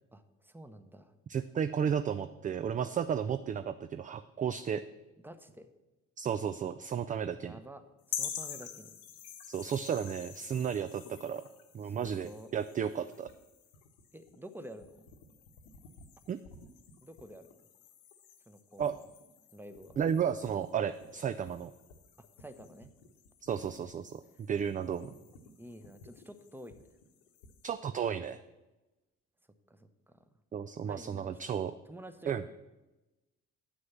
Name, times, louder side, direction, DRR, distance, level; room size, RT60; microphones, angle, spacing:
voice 1, 0.1-1.1 5.2-5.7 7.4-9.0 11.8-12.5 14.1-15.1 17.0-17.5 18.5-18.9 19.5-20.0 22.2-22.9 23.5-23.7 25.6-26.9 29.7-30.2 30.9-31.4 31.9-32.5, right 1 dB, 5° right, 10 dB, 0.9 m, -50 dB
voice 2, 1.3-4.8 6.2-7.6 9.5-11.4 11.7-13.3 16.3-16.4 18.8-19.0 20.0-21.7 23.4-24.2 24.5-25.1 27.6-28.4 30.5-31.7 32.3-32.4, right 8 dB, 20° right, 12 dB, 0.3 m, -33 dB
sound 1, 8.1-27.7, left 8 dB, 75° left, 1.0 m, -48 dB
8.0 x 6.3 x 7.3 m, 1.1 s
figure-of-eight pair, 45°, 38 cm